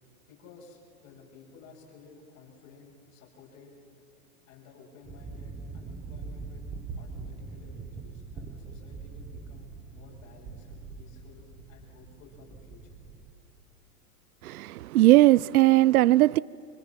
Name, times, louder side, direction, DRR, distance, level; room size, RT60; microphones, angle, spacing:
voice 1, 0.3-3.7 4.5-6.6 6.9-13.0, left 5 dB, 35° left, 7.3 m, -54 dB
sound 1, 5.0-13.3, right 4 dB, 15° right, 1.1 m, -43 dB
voice 2, 14.4-16.4, right 16 dB, 75° right, 0.6 m, -19 dB
30.0 x 26.5 x 7.4 m
hypercardioid pair, 145°, 44 cm